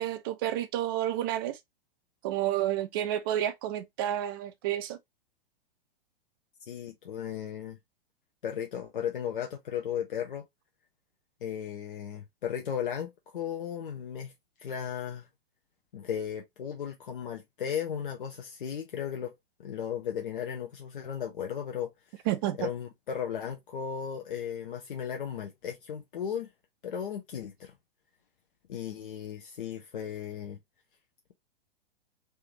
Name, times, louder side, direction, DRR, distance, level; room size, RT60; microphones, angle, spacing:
voice 1, 0.0-1.6 2.2-5.0 22.3-22.7, right 12 dB, 25° right, 0.4 m, -30 dB
voice 2, 6.7-7.8 8.4-10.4 11.4-14.3 14.6-15.3 15.9-19.3 19.6-22.2 22.6-26.5 26.8-27.7 28.7-30.6, left 8 dB, 60° left, 0.7 m, -35 dB
3.3 x 2.7 x 3.2 m
figure-of-eight pair, 105°, 29 cm